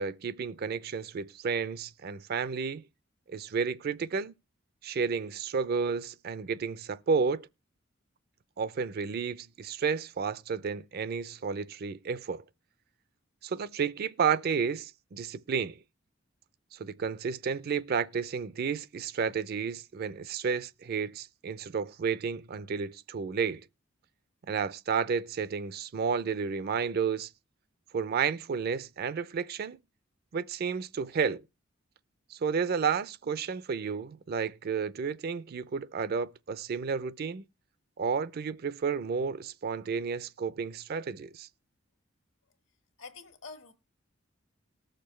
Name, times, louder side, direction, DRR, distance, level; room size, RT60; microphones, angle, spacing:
voice 1, 0.0-2.8 3.3-4.3 4.8-7.5 8.6-12.4 13.4-15.8 16.7-23.6 24.5-27.3 27.9-29.8 30.3-31.4 32.3-37.4 38.0-41.5, right 6 dB, 50° right, 0.4 m, -31 dB
voice 2, 43.0-43.7, left 4 dB, 70° left, 1.4 m, -46 dB
19.5 x 6.6 x 3.1 m
head